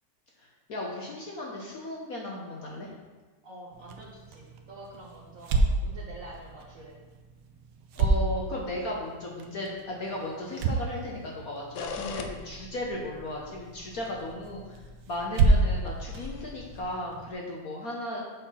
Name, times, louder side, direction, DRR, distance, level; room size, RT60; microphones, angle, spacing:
voice 1, 0.4-2.9 7.9-14.8 15.1-18.2, left 1 dB, 55° left, -2 dB, 1.0 m, -36 dB
voice 2, 3.4-7.0, right 1 dB, 55° right, -3 dB, 0.9 m, -47 dB
sound 1, 3.7-17.3, right 3 dB, 75° right, 1.5 m, -31 dB
sound 2, 11.8-16.8, left 5 dB, 75° left, 1.3 m, -42 dB
7.3 x 4.3 x 5.5 m, 1.3 s
omnidirectional pair, 2.3 m